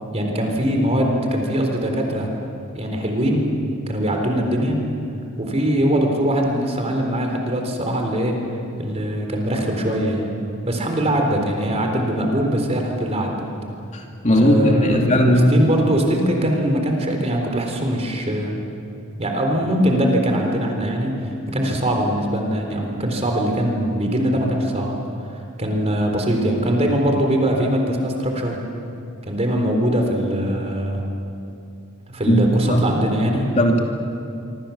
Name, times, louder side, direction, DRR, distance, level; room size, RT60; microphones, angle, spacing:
voice 1, 0.1-2.3 2.7-3.5 3.9-4.8 5.4-8.4 8.8-10.3 10.7-13.5 14.3-18.6 19.2-24.9 25.3-28.6 29.3-31.0 32.1-33.5, equal, 30° right, 2 dB, 3.8 m, -22 dB
voice 2, 13.9-15.6 32.3-32.9 33.5-33.8, equal, 35° left, 1 dB, 2.6 m, -17 dB
25.5 x 25.5 x 7.2 m, 2.6 s
head